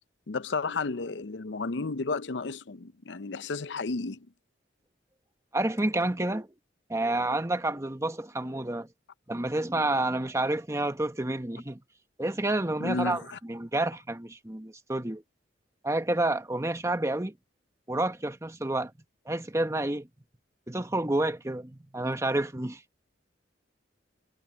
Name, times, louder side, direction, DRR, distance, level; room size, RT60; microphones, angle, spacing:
voice 1, 0.3-4.3 12.8-13.4, left 3 dB, 75° left, 0.7 m, -32 dB
voice 2, 5.5-6.5 6.9-8.9 9.3-11.8 12.2-13.2 13.5-15.2 15.8-17.4 17.9-18.9 19.3-20.1 20.7-22.8, right 2 dB, 15° right, 1.1 m, -29 dB
head